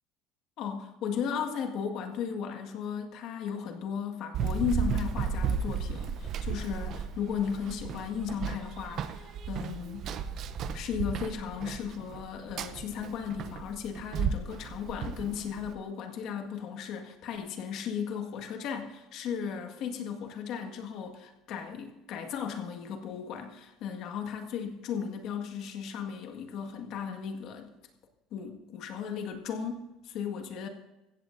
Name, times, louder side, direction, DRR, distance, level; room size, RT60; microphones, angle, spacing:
voice 1, 0.6-10.1 10.7-27.7 28.3-30.7, left 7 dB, 50° left, 4 dB, 1.8 m, -36 dB
Run, 4.3-15.7, right 6 dB, 40° right, 0.7 m, -34 dB
16.0 x 15.0 x 2.7 m, 1.0 s
cardioid pair, 170°, 0 cm